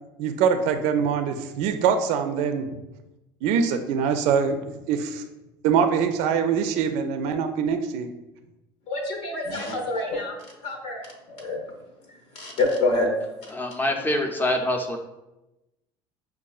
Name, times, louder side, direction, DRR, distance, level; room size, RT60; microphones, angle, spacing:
voice 1, 0.2-2.6 3.4-4.6 4.9-5.2 5.6-8.1, right 6 dB, 70° right, 7 dB, 0.4 m, -23 dB
voice 2, 8.9-10.4 10.6-11.6 12.3-13.1, left 2 dB, 65° left, 1 dB, 0.8 m, -26 dB
voice 3, 13.5-15.0, left 1 dB, 15° left, 3 dB, 0.5 m, -25 dB
5.3 x 2.3 x 2.3 m, 0.96 s
supercardioid pair, 85°, 12 cm